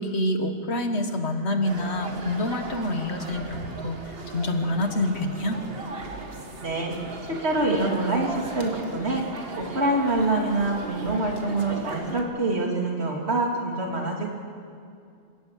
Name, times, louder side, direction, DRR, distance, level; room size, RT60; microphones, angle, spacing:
voice 1, 0.0-4.0 4.3-5.6, left 1 dB, 90° left, 7 dB, 1.9 m, -27 dB
sound 1, 1.6-12.2, right 2 dB, 65° right, 2.1 m, -37 dB
voice 2, 6.6-6.9 7.2-9.2 9.6-14.3, right 2 dB, 85° right, 1 dB, 3.2 m, -25 dB
27.5 x 16.5 x 8.4 m, 2.4 s
omnidirectional pair, 1.1 m